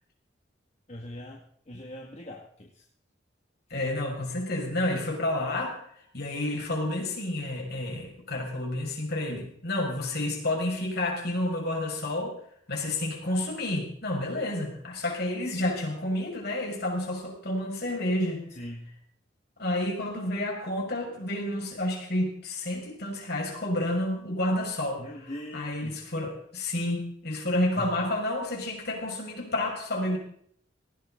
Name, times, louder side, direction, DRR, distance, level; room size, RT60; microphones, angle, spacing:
voice 1, 0.9-2.8 18.5-18.9 25.0-26.1 27.8-27.9, left 1 dB, 35° left, 0 dB, 2.0 m, -41 dB
voice 2, 3.7-5.8 6.1-12.4 12.7-18.4 19.6-30.2, left 1 dB, 55° left, 0 dB, 5.9 m, -30 dB
19.0 x 17.0 x 3.9 m, 0.63 s
head